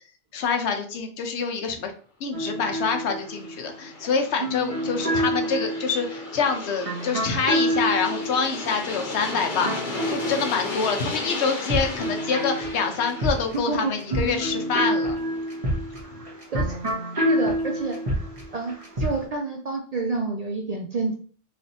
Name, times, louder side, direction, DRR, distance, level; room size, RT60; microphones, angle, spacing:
voice 1, 0.3-1.9 2.2-15.2, left 5 dB, 70° left, 5 dB, 1.0 m, -26 dB
sound 1, 2.3-11.1 11.4-19.2, right 1 dB, 30° right, 1.1 m, -28 dB
Aircraft, 2.9-15.7, left 3 dB, 45° left, 1.0 m, -35 dB
voice 2, 13.5-14.0 16.5-16.8 17.2-18.0 18.5-21.1, right 3 dB, 60° right, 2 dB, 0.4 m, -28 dB
3.3 x 2.6 x 4.1 m, 0.43 s
omnidirectional pair, 1.2 m